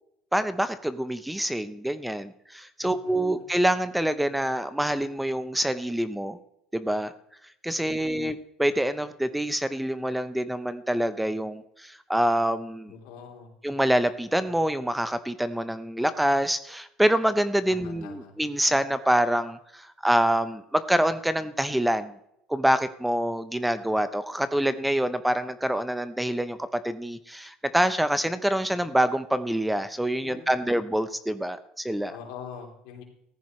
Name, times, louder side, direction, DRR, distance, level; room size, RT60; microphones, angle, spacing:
voice 1, 0.3-6.4 6.7-7.1 7.6-12.9 13.6-22.1 22.5-26.6 26.8-32.1, right 1 dB, 5° right, 12 dB, 0.8 m, -26 dB
voice 2, 2.8-3.4 7.8-8.2 12.9-13.5 17.7-18.3 30.1-30.8 32.1-33.0, left 7 dB, 80° left, 1 dB, 3.5 m, -44 dB
15.0 x 14.5 x 3.2 m, 0.77 s
supercardioid pair, 105°, 0 cm